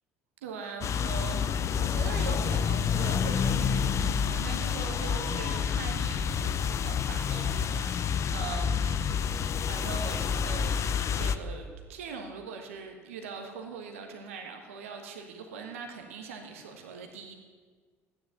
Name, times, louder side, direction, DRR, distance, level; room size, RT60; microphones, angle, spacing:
voice 1, 0.4-17.3, right 5 dB, 80° right, 4 dB, 1.4 m, -41 dB
sound 1, 0.8-11.4, left 7 dB, 45° left, 0.7 m, -28 dB
14.0 x 10.0 x 7.4 m, 1.5 s
hypercardioid pair, 60°, 7 cm